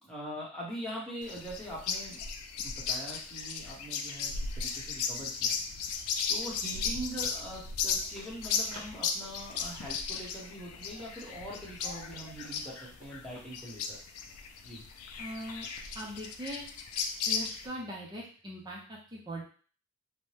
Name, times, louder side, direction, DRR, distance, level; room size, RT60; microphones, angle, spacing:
voice 1, 0.0-2.2 2.6-5.6 6.3-14.0 14.6-14.8, right 1 dB, 5° left, -7 dB, 0.9 m, -42 dB
sound 1, 1.2-17.7, left 6 dB, 85° left, 0.4 m, -36 dB
Run, 7.8-13.5, equal, 65° right, 1.1 m, -56 dB
voice 2, 15.2-15.7 15.9-16.7 17.3-19.4, equal, 20° right, -3 dB, 0.5 m, -40 dB
2.7 x 2.1 x 3.1 m, 0.42 s
head